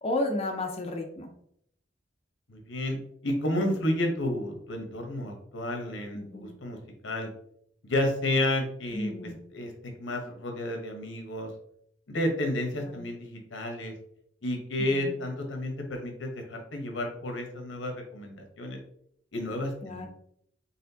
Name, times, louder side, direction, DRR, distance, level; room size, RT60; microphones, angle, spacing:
voice 1, 0.0-1.3 6.1-6.5 8.9-9.4 12.8-13.0 14.8-15.1 19.8-20.1, left 1 dB, 30° left, 2 dB, 0.5 m, -33 dB
voice 2, 2.5-3.0 3.2-6.8 7.0-7.3 7.8-9.7 10.0-11.5 12.1-13.9 14.4-18.8 19.3-20.1, left 1 dB, 90° left, 4 dB, 1.0 m, -31 dB
4.2 x 3.6 x 2.7 m, 0.69 s
head